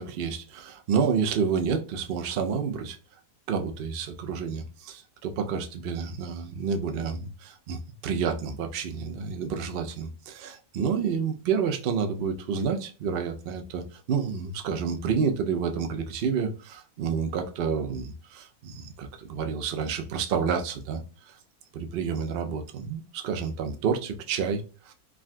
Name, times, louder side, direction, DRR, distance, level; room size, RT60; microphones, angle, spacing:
voice 1, 0.0-3.0 3.5-21.4 21.7-24.9, right 6 dB, 85° right, 0.5 m, -29 dB
3.6 x 2.2 x 2.4 m
omnidirectional pair, 1.7 m